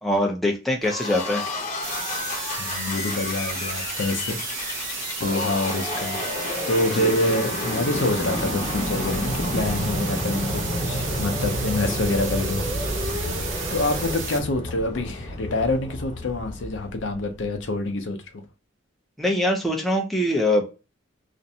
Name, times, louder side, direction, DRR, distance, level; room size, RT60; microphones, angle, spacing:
voice 1, 0.0-1.5 7.0-7.1 19.2-20.7, left 1 dB, ahead, 0.5 m, -23 dB
sound 1, 0.8-17.4, left 1 dB, 40° left, 0.9 m, -30 dB
sound 2, 1.8-14.4, right 5 dB, 85° right, 0.6 m, -33 dB
voice 2, 2.6-4.9 5.2-6.2 6.7-12.6 13.0-13.5 13.7-18.4, left 2 dB, 70° left, 0.6 m, -27 dB
sound 3, 9.5-14.2, left 1 dB, 45° right, 0.8 m, -36 dB
2.5 x 2.1 x 2.7 m
head